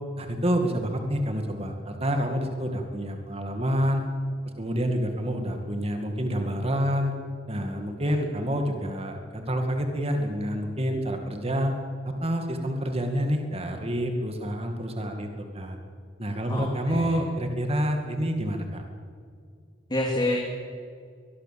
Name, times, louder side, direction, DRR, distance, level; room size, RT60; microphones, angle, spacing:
voice 1, 0.2-4.0 4.6-7.1 7.5-11.7 12.0-15.8 16.2-18.8, equal, 30° right, 4 dB, 2.2 m, -28 dB
voice 2, 16.5-17.2 19.9-20.5, left 1 dB, 25° left, 0 dB, 2.9 m, -28 dB
22.5 x 22.5 x 7.7 m, 2.2 s
head